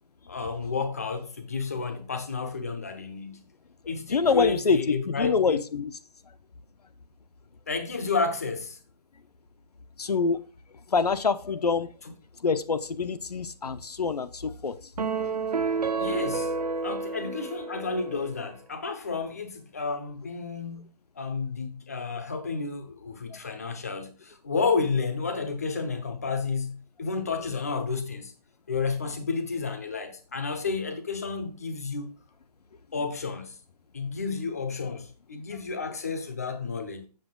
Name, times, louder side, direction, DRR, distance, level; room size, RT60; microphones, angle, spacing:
voice 1, 0.3-3.4 3.9-5.6 7.7-8.8 15.9-16.5 16.8-20.9 21.2-28.3 28.7-32.1 32.9-33.6 33.9-37.1, left 4 dB, 25° left, 0.8 m, -31 dB
voice 2, 4.1-6.0 6.3-6.4 10.0-10.4 10.9-11.9 12.4-14.9 23.3-23.4, left 5 dB, 70° left, 0.9 m, -26 dB
sound 1, 15.0-18.5, right 4 dB, 75° right, 0.9 m, -30 dB
7.7 x 6.7 x 3.8 m
hypercardioid pair, 180°, 21 cm